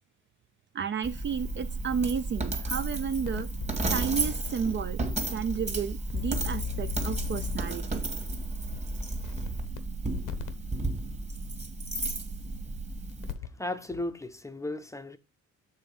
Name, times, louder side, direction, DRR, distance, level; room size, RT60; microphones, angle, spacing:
voice 1, 0.7-3.5 3.9-5.0 5.3-8.0, right 7 dB, 40° right, 0.5 m, -32 dB
Coin (dropping), 1.0-13.3, right 2 dB, 20° right, 1.6 m, -33 dB
sound 1, 3.3-3.9 4.6-4.7 5.1-5.2 6.1-7.8 8.7-8.8 9.2-9.8 10.1-10.5 12.0-12.1 13.1-13.6 13.9-14.0, left 14 dB, 90° left, 1.0 m, -37 dB
voice 2, 13.5-15.2, left 1 dB, 10° left, 0.6 m, -35 dB
7.4 x 3.8 x 5.3 m
cardioid pair, 120°, 31 cm